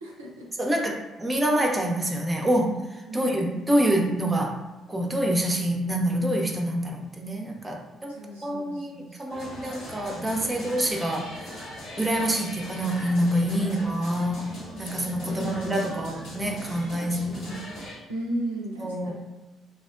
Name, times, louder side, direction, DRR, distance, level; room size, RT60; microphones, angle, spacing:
voice 1, 0.0-0.5 3.1-3.3 8.1-9.5 12.0-12.4 15.3-16.1 18.1-19.1, right 1 dB, 85° right, -3 dB, 0.4 m, -36 dB
voice 2, 0.6-4.6 4.9-11.5 12.0-17.6 18.8-19.1, right 1 dB, 20° right, 1 dB, 0.5 m, -26 dB
sound 1, 9.3-18.0, left 1 dB, 65° left, 0.9 m, -40 dB
2.6 x 2.0 x 2.4 m, 1.1 s
figure-of-eight pair, 45°, 0 cm